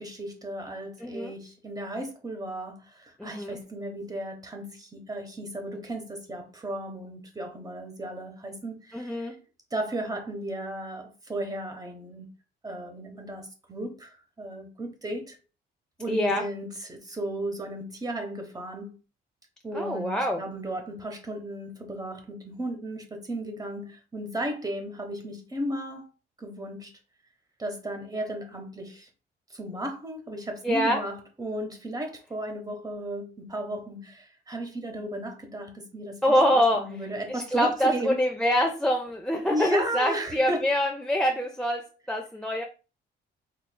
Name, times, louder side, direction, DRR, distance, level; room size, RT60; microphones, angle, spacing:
voice 1, 0.0-9.3 9.7-12.3 12.6-15.4 16.0-18.9 19.6-26.1 26.4-26.9 27.6-29.1 29.5-38.2 39.5-40.6, right 1 dB, 20° right, 1.1 m, -35 dB
voice 2, 1.0-1.3 3.2-3.6 8.9-9.4 16.1-16.5 19.7-20.4 30.6-31.0 36.2-36.9 37.3-42.6, equal, 5° left, 0.5 m, -25 dB
4.5 x 3.0 x 2.2 m
cardioid pair, 90°, 20 cm